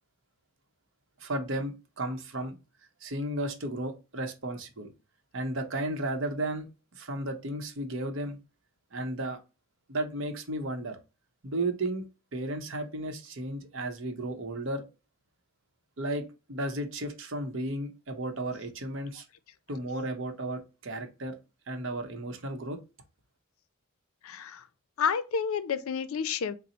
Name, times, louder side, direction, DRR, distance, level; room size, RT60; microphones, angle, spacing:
voice 1, 1.2-2.6 3.0-4.9 5.3-6.7 6.9-8.4 8.9-9.4 9.9-11.0 11.4-12.0 12.3-14.8 16.0-19.2 19.7-21.4 21.7-22.8, right 1 dB, 65° right, 0.7 m, -34 dB
voice 2, 24.2-24.6 25.0-26.6, left 6 dB, 80° left, 0.4 m, -30 dB
3.9 x 2.0 x 4.1 m
head